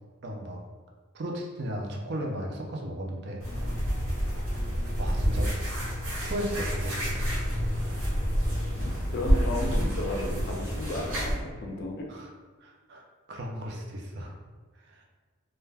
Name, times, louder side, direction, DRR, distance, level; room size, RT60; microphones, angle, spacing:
voice 1, 0.2-0.6 1.1-3.5 5.0-5.5 6.2-7.2 10.5-10.6 12.1-12.3 12.6-14.3 14.7-15.1, equal, 50° right, 0 dB, 0.4 m, -35 dB
sound 1, 3.4-11.4, equal, 90° right, 1.0 m, -28 dB
voice 2, 9.1-11.3 11.6-12.1, left 1 dB, 45° left, 0 dB, 0.4 m, -33 dB
2.2 x 2.1 x 3.3 m, 1.4 s
head